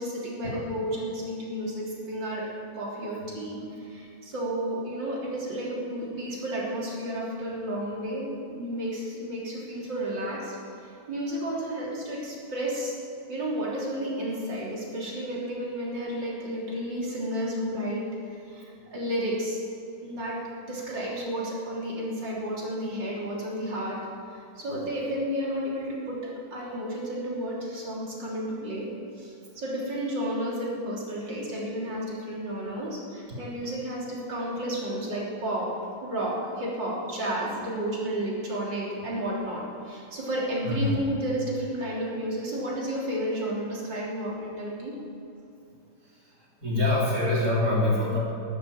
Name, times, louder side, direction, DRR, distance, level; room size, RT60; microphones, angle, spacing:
voice 1, 0.0-2.5 2.7-13.0 13.3-19.6 20.0-20.4 20.7-28.9 29.2-35.8 36.0-45.0, right 1 dB, 60° right, -5 dB, 3.9 m, -32 dB
voice 2, 46.6-48.2, left 2 dB, 45° right, -6 dB, 4.4 m, -24 dB
13.0 x 11.5 x 7.3 m, 2.7 s
omnidirectional pair, 2.2 m